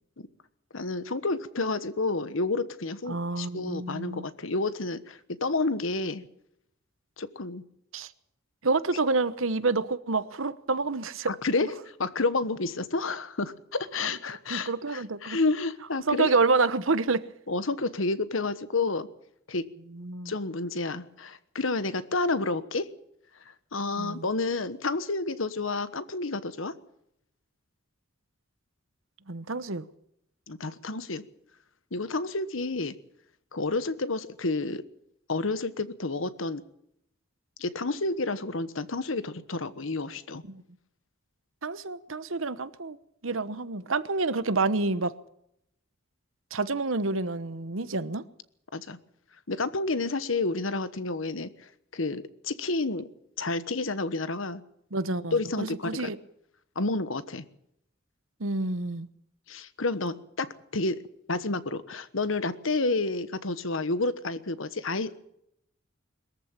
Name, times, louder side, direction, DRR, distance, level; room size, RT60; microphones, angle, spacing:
voice 1, 0.7-6.2 7.2-7.6 11.3-16.3 17.5-19.1 19.5-19.7 20.2-22.9 23.7-26.7 30.5-31.2 31.9-32.9 33.5-34.8 35.3-36.6 37.6-40.4 48.7-49.0 49.5-51.5 51.9-53.1 53.4-54.6 55.3-56.0 56.7-57.4 59.5-61.0 61.3-65.3, left 3 dB, 75° left, 1.3 m, -30 dB
voice 2, 3.1-4.3 7.9-8.1 8.6-11.3 11.6-11.7 14.5-15.4 16.1-17.2 19.9-20.3 24.0-24.3 29.3-29.8 40.5-40.6 41.6-43.0 43.2-45.1 46.5-48.2 54.9-56.2 58.4-59.1, right 3 dB, 75° right, 1.1 m, -28 dB
22.0 x 14.0 x 8.9 m
head